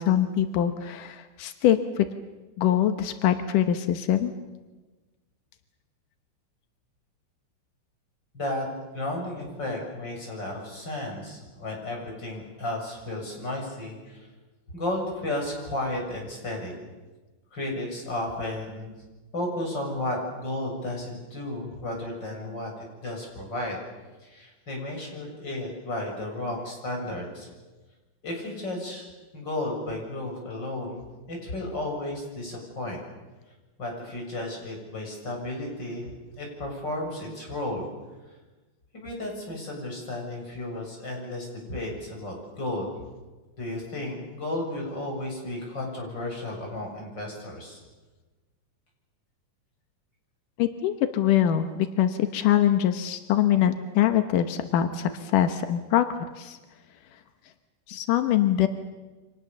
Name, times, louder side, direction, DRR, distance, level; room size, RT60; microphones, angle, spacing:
voice 1, 0.0-2.1 2.6-4.3 50.6-56.1 56.4-56.6 57.9-58.7, left 11 dB, 90° left, 8 dB, 2.7 m, -23 dB
voice 2, 8.3-8.7 8.9-14.3 14.7-16.7 17.5-18.9 19.3-23.8 24.2-27.5 28.2-29.1 29.3-33.0 33.8-36.0 36.4-37.9 38.3-38.4 38.9-42.9 43.6-47.8, left 1 dB, 35° left, 0 dB, 8.1 m, -33 dB
30.0 x 26.0 x 7.2 m, 1.2 s
omnidirectional pair, 3.6 m